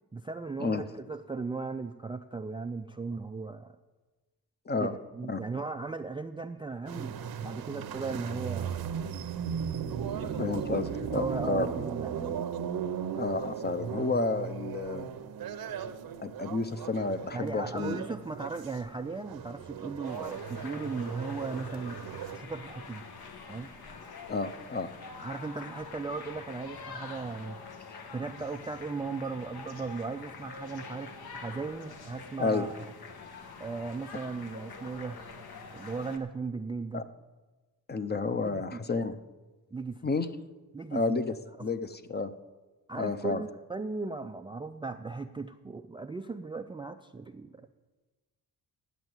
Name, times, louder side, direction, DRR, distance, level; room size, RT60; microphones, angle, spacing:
voice 1, 0.1-3.8 4.8-8.9 10.2-10.7 11.0-12.4 17.3-22.0 22.3-23.0 23.5-23.7 25.1-27.7 28.1-32.9 33.6-35.2 35.7-37.0 38.4-38.8 39.7-40.0 40.7-41.2 41.6-41.7 42.9-47.6, right 4 dB, 15° right, 7 dB, 0.3 m, -37 dB
sound 1, 6.9-22.4, right 8 dB, 65° right, 0.8 m, -37 dB
voice 2, 10.4-11.7 13.2-15.1 16.2-18.0 24.3-24.9 27.9-28.0 32.4-32.7 36.9-37.0 37.9-39.2 40.0-40.3 40.9-41.3 41.6-42.3 43.0-43.4, left 3 dB, 25° left, 11 dB, 0.6 m, -31 dB
sound 2, 20.0-36.2, left 4 dB, 70° left, 1.4 m, -46 dB
10.5 x 8.2 x 7.8 m, 1.2 s
wide cardioid pair, 120°, 38 cm